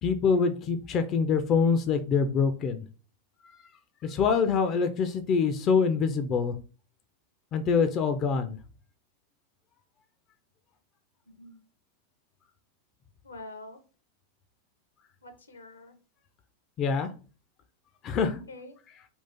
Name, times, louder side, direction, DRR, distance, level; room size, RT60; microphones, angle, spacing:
voice 1, 0.0-2.8 4.0-6.5 7.5-8.6 16.8-17.1 18.0-18.4, left 5 dB, 35° left, 8 dB, 0.4 m, -25 dB
voice 2, 11.3-11.6 13.2-13.8 15.2-16.0 18.3-18.8, left 2 dB, 75° left, 8 dB, 0.8 m, -46 dB
3.7 x 2.4 x 4.2 m, 0.37 s
figure-of-eight pair, 90°, 0 cm